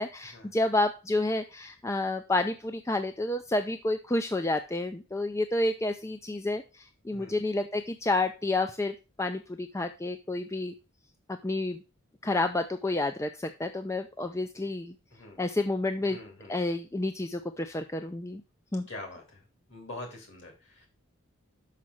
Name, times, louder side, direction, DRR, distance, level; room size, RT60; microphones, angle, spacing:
voice 1, 0.0-10.7 11.3-11.8 12.2-14.9 15.4-16.2 16.5-18.4 18.7-18.9, left 2 dB, 15° left, 7 dB, 0.4 m, -30 dB
voice 2, 16.0-16.6 18.9-19.4 19.7-20.9, left 2 dB, 55° left, 3 dB, 3.2 m, -44 dB
6.1 x 5.7 x 6.2 m, 0.31 s
head